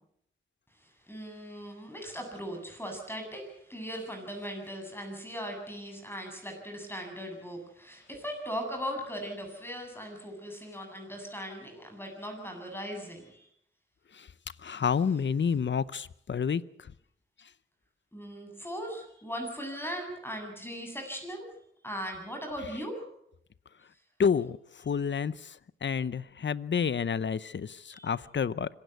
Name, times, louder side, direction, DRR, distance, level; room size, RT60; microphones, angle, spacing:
voice 1, 0.8-13.5 14.8-14.9 18.1-21.5 21.8-23.0 27.9-28.1, equal, 10° left, 3 dB, 8.0 m, -39 dB
voice 2, 14.6-16.6 24.2-24.6 24.9-25.3 25.8-28.7, left 6 dB, 65° left, 18 dB, 0.8 m, -29 dB
25.5 x 16.0 x 8.2 m, 0.73 s
wide cardioid pair, 70°, 21 cm